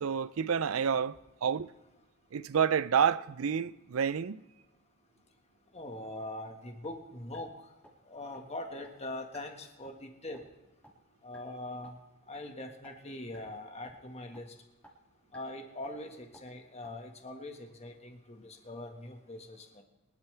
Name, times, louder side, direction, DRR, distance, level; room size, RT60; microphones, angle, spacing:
voice 1, 0.0-1.7 2.3-4.4, right 7 dB, 70° right, 0.5 m, -29 dB
voice 2, 5.7-7.5 8.1-10.4 11.2-12.0 12.3-14.5 15.3-19.8, left 1 dB, 30° left, 1.6 m, -42 dB
sound 1, 6.8-7.0 7.3-7.4 7.8-7.9 8.3-8.4 8.8-8.9 9.3-9.4 9.8-10.0 10.3-10.5 10.8-10.9 11.3-11.4 11.8-11.9 12.3-12.4 12.8-12.9 13.3-13.5 13.8-13.9 14.3-14.4 14.8-14.9 15.3-15.4 15.8-15.9 16.3-16.4 16.8-16.9, equal, 5° left, 2.3 m, -55 dB
23.5 x 11.5 x 3.4 m
head